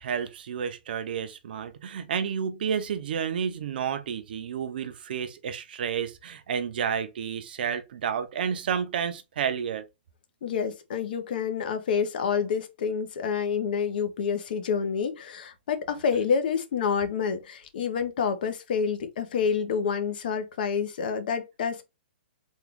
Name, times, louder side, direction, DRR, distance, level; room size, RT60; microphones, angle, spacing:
voice 1, 0.0-9.9, right 7 dB, 55° right, 0.6 m, -30 dB
voice 2, 10.4-21.8, left 6 dB, 50° left, 0.7 m, -28 dB
3.6 x 2.4 x 3.4 m
hypercardioid pair, 170°, 6 cm